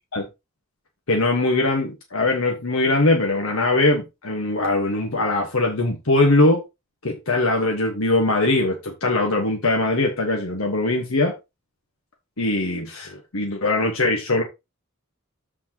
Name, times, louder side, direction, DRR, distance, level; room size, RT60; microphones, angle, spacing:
voice 1, 1.1-6.6 7.0-11.3 12.4-14.4, left 2 dB, 75° left, 1.4 m, -21 dB
13.5 x 4.5 x 2.9 m
head